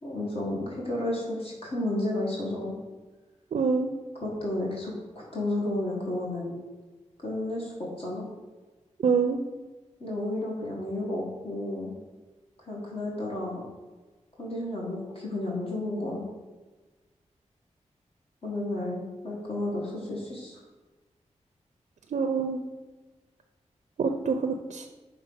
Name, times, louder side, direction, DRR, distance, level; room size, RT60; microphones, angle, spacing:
voice 1, 0.0-2.8 4.1-6.5 7.2-8.2 10.0-11.9 12.7-13.6 14.4-16.3 18.4-20.6, left 1 dB, 50° left, -5 dB, 1.6 m, -32 dB
voice 2, 3.5-3.9 9.0-9.4 22.1-22.6 24.0-24.9, right 5 dB, 75° right, 5 dB, 0.4 m, -26 dB
5.7 x 3.6 x 5.4 m, 1.2 s
wide cardioid pair, 80°, 12 cm